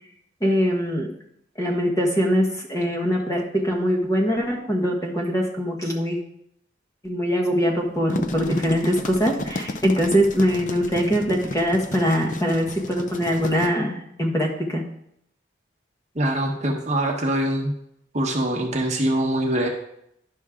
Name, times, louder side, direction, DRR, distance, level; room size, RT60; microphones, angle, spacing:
voice 1, 0.4-1.1 1.6-6.2 7.0-14.8, equal, 15° left, 0 dB, 1.3 m, -22 dB
sound 1, 7.9-13.7, left 2 dB, 40° left, 0.6 m, -32 dB
voice 2, 16.1-17.7 18.1-19.7, right 1 dB, 35° right, 1 dB, 1.2 m, -23 dB
11.0 x 6.3 x 3.7 m, 0.74 s
head